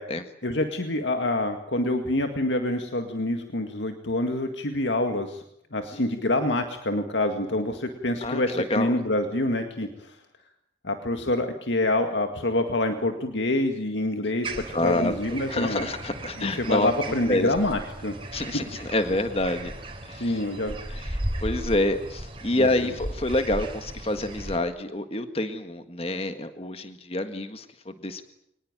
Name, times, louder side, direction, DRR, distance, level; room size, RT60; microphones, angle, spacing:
voice 1, 0.4-5.4 5.7-10.2 10.8-15.9 16.4-18.1 20.2-20.8 22.6-22.9, left 1 dB, 85° left, 6 dB, 2.0 m, -26 dB
voice 2, 8.2-8.9 14.7-15.1 15.5-16.9 17.3-17.5 18.3-19.7 20.0-20.4 20.9-21.1 21.4-28.3, left 1 dB, 35° left, 8 dB, 1.7 m, -27 dB
sound 1, 14.4-24.6, right 1 dB, 30° right, 3.8 m, -36 dB
24.0 x 19.5 x 9.0 m, 0.76 s
head